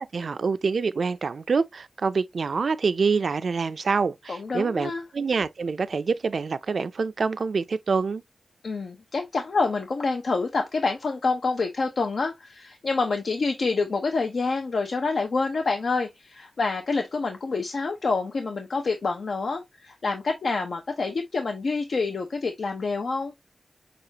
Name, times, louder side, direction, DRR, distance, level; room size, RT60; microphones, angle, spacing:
voice 1, 0.0-8.2, right 5 dB, 70° right, 0.4 m, -26 dB
voice 2, 4.3-5.0 8.6-23.3, left 4 dB, 70° left, 0.7 m, -27 dB
6.8 x 2.4 x 2.8 m
wide cardioid pair, 75°, 0 cm